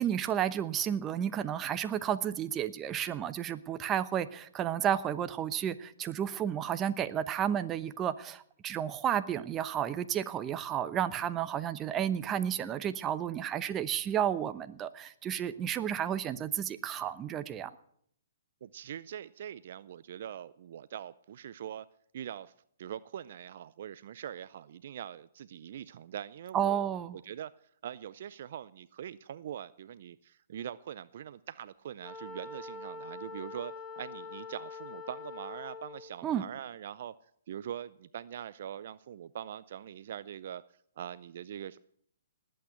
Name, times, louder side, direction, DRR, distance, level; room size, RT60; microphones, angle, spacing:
voice 1, 0.0-17.7 26.5-27.2 36.2-36.4, right 9 dB, 20° right, 11 dB, 0.9 m, -32 dB
voice 2, 18.6-21.9 22.1-22.5 22.8-26.8 27.2-27.5 27.8-37.1 37.5-40.6 41.0-41.8, right 10 dB, 55° right, 16 dB, 0.5 m, -43 dB
Wind instrument woodwind instrument, 32.0-36.2, left 4 dB, 20° left, 1.4 m, -44 dB
19.5 x 8.6 x 7.8 m, 0.67 s
hypercardioid pair, 135°, 0 cm